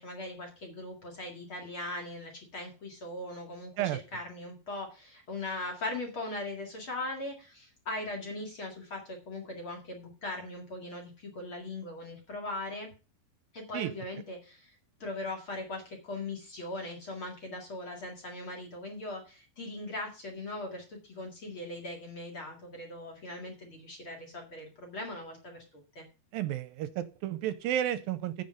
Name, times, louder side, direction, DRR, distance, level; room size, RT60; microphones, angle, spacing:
voice 1, 0.0-12.9 13.5-26.0, left 2 dB, 40° left, 1 dB, 2.3 m, -40 dB
voice 2, 26.3-28.4, right 12 dB, 80° right, 13 dB, 2.4 m, -32 dB
9.6 x 7.1 x 5.1 m, 0.31 s
omnidirectional pair, 4.3 m